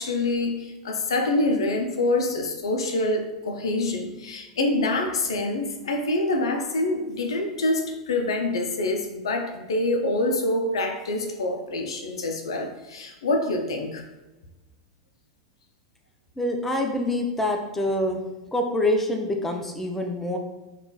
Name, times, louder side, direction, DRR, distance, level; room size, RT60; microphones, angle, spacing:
voice 1, 0.0-14.0, left 2 dB, 80° left, 4 dB, 0.4 m, -26 dB
voice 2, 16.4-18.2 18.5-20.4, left 1 dB, 10° left, 2 dB, 0.4 m, -25 dB
2.9 x 2.3 x 2.2 m, 1.1 s
hypercardioid pair, 95°, 3 cm